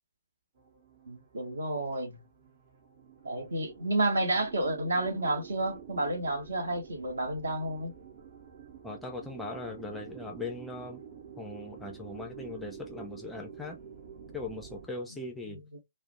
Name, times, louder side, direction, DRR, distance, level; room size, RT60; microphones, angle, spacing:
sound 1, 0.6-14.9, right 7 dB, 40° right, 0.8 m, -49 dB
voice 1, 1.1-2.2 3.2-7.9 15.5-15.6, right 1 dB, 60° right, 0.9 m, -30 dB
voice 2, 8.8-11.0 11.4-13.8 14.3-15.6, left 2 dB, 5° left, 0.4 m, -39 dB
2.4 x 2.1 x 2.7 m
figure-of-eight pair, 130°, 0 cm